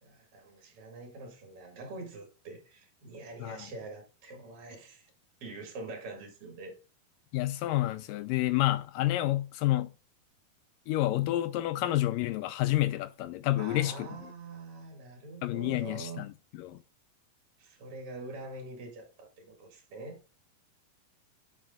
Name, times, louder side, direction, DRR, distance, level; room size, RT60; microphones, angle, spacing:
voice 1, 0.0-5.1 5.4-6.8 13.6-16.2 17.6-20.2, right 3 dB, 45° right, 2.6 m, -44 dB
voice 2, 7.3-9.9 10.9-14.1 15.4-16.8, left 15 dB, 80° left, 2.0 m, -29 dB
8.7 x 7.2 x 2.3 m
omnidirectional pair, 4.3 m